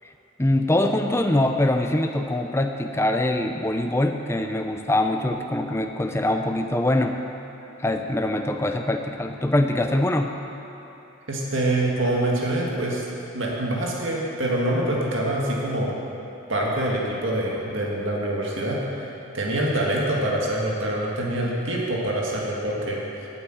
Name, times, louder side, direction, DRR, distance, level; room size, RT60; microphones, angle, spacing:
voice 1, 0.4-7.2 7.8-10.4, left 1 dB, 10° left, 4 dB, 0.5 m, -23 dB
voice 2, 11.3-13.1 13.3-15.9 16.5-23.0, right 1 dB, 65° right, -3 dB, 1.9 m, -25 dB
8.7 x 8.3 x 8.9 m, 3.0 s
head